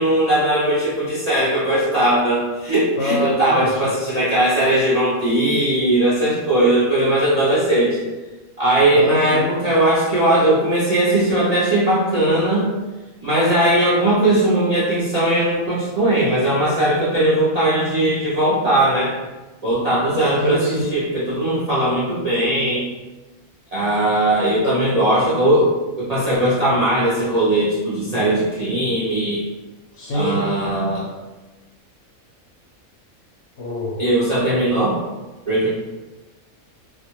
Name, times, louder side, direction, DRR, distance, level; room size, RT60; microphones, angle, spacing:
voice 1, 0.0-8.1 8.6-12.7 13.2-19.1 19.6-22.9 23.7-25.7 26.0-29.4 30.1-31.1 34.0-35.0 35.5-35.7, right 1 dB, 50° right, -9 dB, 0.4 m, -19 dB
voice 2, 3.0-3.8 8.9-9.4 20.4-20.9 24.6-24.7 30.0-30.4 33.6-34.0, left 2 dB, 60° left, -4 dB, 0.8 m, -25 dB
2.4 x 2.1 x 3.0 m, 1.1 s
omnidirectional pair, 1.5 m